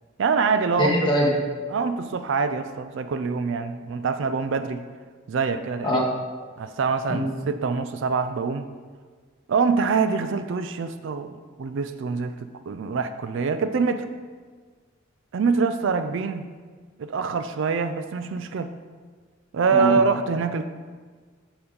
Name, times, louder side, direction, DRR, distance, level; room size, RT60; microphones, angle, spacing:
voice 1, 0.2-0.9 1.7-4.8 5.3-6.0 6.6-8.6 9.5-11.3 11.6-12.3 12.7-14.1 15.3-16.5 17.0-18.7 19.5-20.7, right 5 dB, 60° right, 10 dB, 0.4 m, -25 dB
voice 2, 0.8-1.3 5.8-6.1 7.1-7.3 19.7-19.9, equal, 20° left, -3 dB, 1.4 m, -22 dB
7.0 x 5.5 x 5.0 m, 1.5 s
head